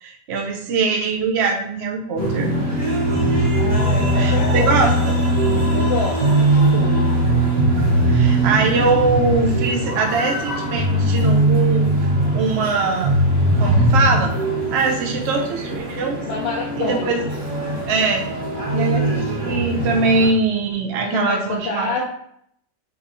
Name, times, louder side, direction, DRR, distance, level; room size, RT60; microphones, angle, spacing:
voice 1, 0.0-2.5 3.3-3.5 4.1-5.2 8.1-11.9 12.3-13.2 13.6-14.3 14.7-16.2 16.8-17.2 17.9-18.3 18.7-22.0, right 4 dB, 70° right, 1 dB, 0.6 m, -22 dB
sound 1, 2.2-20.3, right 1 dB, 55° right, 1.6 m, -20 dB
voice 2, 3.6-4.8 5.7-7.1 16.2-17.2 21.0-22.0, left 4 dB, 85° left, -2 dB, 1.2 m, -28 dB
4.4 x 4.2 x 2.6 m, 0.72 s
omnidirectional pair, 1.9 m